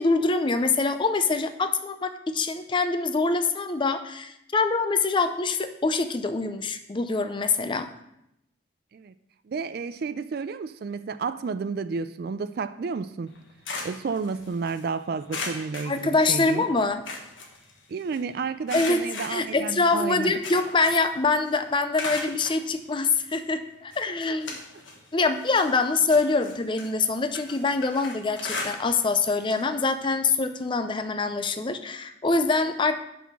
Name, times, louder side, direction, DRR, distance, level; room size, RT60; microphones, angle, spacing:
voice 1, 0.0-7.9 15.9-17.0 18.7-19.0 19.3-24.6 25.1-33.0, left 3 dB, 25° left, 0.4 m, -24 dB
voice 2, 9.5-13.3 13.8-16.6 17.9-20.3 24.0-24.1, right 5 dB, 55° right, 0.3 m, -31 dB
sound 1, 13.3-14.8 15.3-16.6 16.9-18.2 18.7-21.2 21.5-22.6 23.3-23.4 23.9-25.0 25.3-29.1 29.4-29.7 30.0-30.1 31.3-31.4, left 3 dB, 85° left, 1.4 m, -37 dB
5.8 x 5.6 x 6.1 m
head